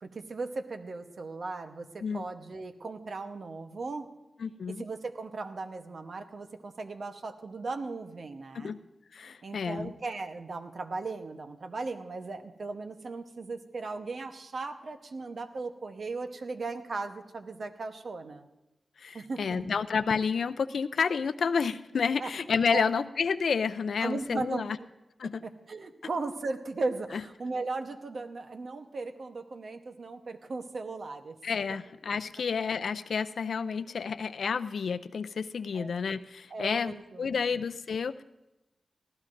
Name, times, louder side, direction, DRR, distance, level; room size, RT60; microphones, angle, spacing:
voice 1, 0.0-4.1 4.7-8.8 9.4-18.5 19.1-19.7 22.2-22.3 22.7-23.0 24.0-24.6 25.2-31.4 31.7-31.8 35.7-36.0 36.5-37.5, right 3 dB, 70° right, 7 dB, 1.0 m, -37 dB
voice 2, 4.4-4.9 8.5-8.8 9.1-9.9 19.0-24.8 25.2-25.4 31.4-38.2, left 5 dB, 80° left, 14 dB, 0.4 m, -30 dB
19.5 x 14.5 x 2.6 m, 0.97 s
cardioid pair, 45°, 0 cm